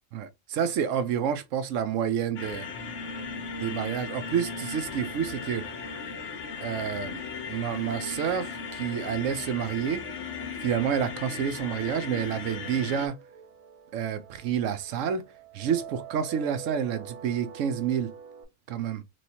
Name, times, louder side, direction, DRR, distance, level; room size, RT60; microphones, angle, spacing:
voice 1, 0.1-2.7 3.6-5.6 6.6-7.2 7.5-10.0 10.6-13.1 13.9-15.2 15.5-18.1 18.7-19.0, right 8 dB, 85° right, 1.0 m, -29 dB
sound 1, 2.4-13.1, left 5 dB, 70° left, 1.1 m, -37 dB
sound 2, 11.6-18.4, right 7 dB, 55° right, 0.9 m, -46 dB
3.2 x 3.0 x 2.7 m
omnidirectional pair, 1.3 m